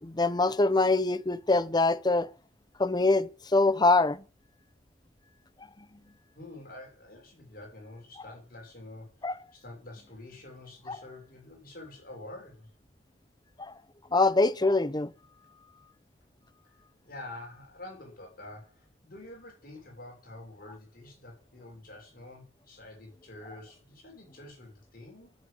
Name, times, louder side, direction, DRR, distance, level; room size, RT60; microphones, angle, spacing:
voice 1, 0.0-2.3 2.8-4.2 9.2-9.4 10.9-11.0 13.6-13.8 14.1-15.1, left 3 dB, 20° left, 0.8 m, -24 dB
voice 2, 6.3-12.7 16.6-16.7 17.0-25.4, left 2 dB, 50° left, 6.2 m, -47 dB
11.0 x 7.6 x 8.6 m
head